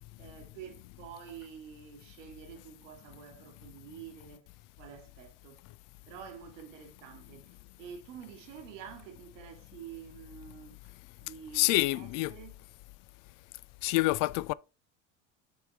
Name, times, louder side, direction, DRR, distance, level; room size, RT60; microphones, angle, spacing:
voice 1, 0.2-4.5 4.8-5.6 6.1-10.9 11.2-12.6, right 8 dB, 80° right, 1.8 m, -48 dB
voice 2, 11.5-12.3 13.8-14.5, left 20 dB, 60° left, 0.5 m, -27 dB
7.2 x 3.5 x 4.5 m
hypercardioid pair, 80°, 37 cm